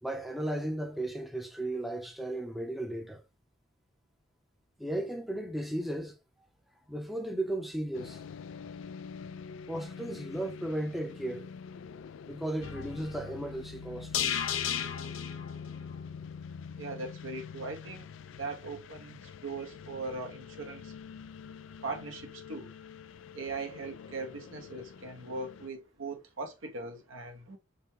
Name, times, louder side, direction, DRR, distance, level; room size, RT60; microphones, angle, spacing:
voice 1, 0.0-3.2 4.8-6.2 6.9-8.2 9.7-11.5 12.3-14.2, right 1 dB, ahead, 0.7 m, -35 dB
sound 1, 7.9-25.7, left 6 dB, 65° left, 0.3 m, -46 dB
sound 2, 12.6-16.8 17.1-17.2, left 8 dB, 85° left, 0.7 m, -36 dB
voice 2, 16.8-20.9 21.8-22.7 23.3-27.6, right 3 dB, 75° right, 1.1 m, -40 dB
5.3 x 2.2 x 4.5 m
head